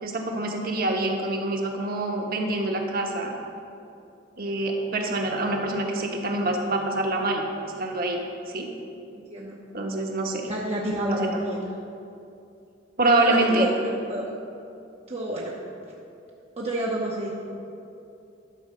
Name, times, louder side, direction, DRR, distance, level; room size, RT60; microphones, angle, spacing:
voice 1, 0.0-3.3 4.4-7.4 7.8-8.2 8.5-8.7 9.7-10.4 11.1-11.3 13.0-13.7, right 2 dB, 50° right, 1 dB, 1.2 m, -25 dB
voice 2, 10.4-11.6 13.0-14.3 15.1-15.6 16.6-17.3, right 1 dB, 35° right, -3 dB, 0.8 m, -29 dB
11.5 x 4.8 x 6.7 m, 2.7 s
head